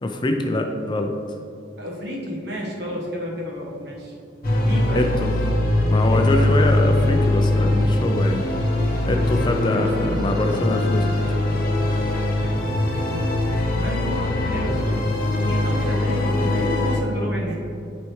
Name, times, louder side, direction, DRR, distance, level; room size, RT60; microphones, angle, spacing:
voice 1, 0.0-1.1 4.9-5.3 5.9-8.4 9.0-11.1, left 1 dB, 25° left, 4 dB, 0.4 m, -24 dB
voice 2, 1.8-4.2 4.6-5.1 6.1-6.2 9.1-9.2 9.7-9.9 12.1-13.4 13.7-15.1 15.4-17.5, equal, 60° right, -3 dB, 1.4 m, -31 dB
sound 1, 4.4-17.0, left 1 dB, 50° left, 0.9 m, -21 dB
9.4 x 4.2 x 3.1 m, 2.5 s
head